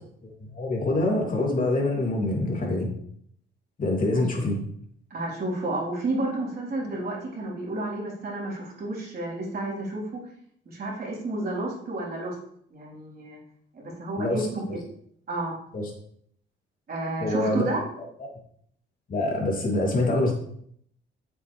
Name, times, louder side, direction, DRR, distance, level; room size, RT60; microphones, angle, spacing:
voice 1, 0.2-2.9 3.8-4.6 14.2-14.5 15.7-15.9 17.2-17.7 18.2-18.3 19.1-20.3, left 2 dB, 45° left, -1 dB, 3.0 m, -25 dB
voice 2, 5.1-10.2 10.7-12.4 12.7-13.4 13.7-14.8 15.3-15.6 16.9-17.8, right 2 dB, 50° right, -5 dB, 4.0 m, -31 dB
8.3 x 8.1 x 3.4 m, 0.66 s
cardioid pair, 90°, 20 cm